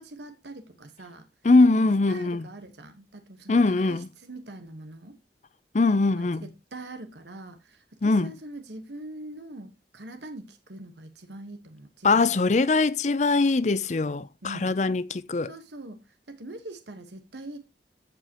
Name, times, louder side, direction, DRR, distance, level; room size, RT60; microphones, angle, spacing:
voice 1, 0.0-1.3 1.7-5.2 6.1-12.5 14.4-14.8 15.4-17.6, right 1 dB, 80° right, 1.3 m, -43 dB
voice 2, 1.4-2.5 3.5-4.1 5.7-6.4 8.0-8.3 12.0-15.5, left 3 dB, 40° left, 0.5 m, -22 dB
15.0 x 5.2 x 2.9 m
head